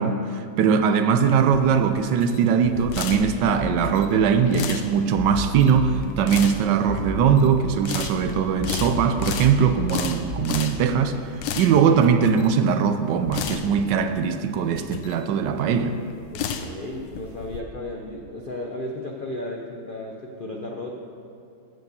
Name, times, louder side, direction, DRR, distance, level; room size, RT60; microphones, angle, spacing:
voice 1, 0.0-11.2 11.5-15.9, right 7 dB, 75° right, 9 dB, 1.2 m, -21 dB
sound 1, 1.1-17.6, left 7 dB, 85° left, 1.4 m, -34 dB
sound 2, 3.6-4.5 5.2-6.5 6.9-7.9 8.6-10.5, left 3 dB, 45° left, 1.9 m, -34 dB
voice 2, 16.3-20.9, left 1 dB, 60° left, 0 dB, 0.5 m, -34 dB
13.5 x 5.3 x 6.8 m, 2.5 s
omnidirectional pair, 2.0 m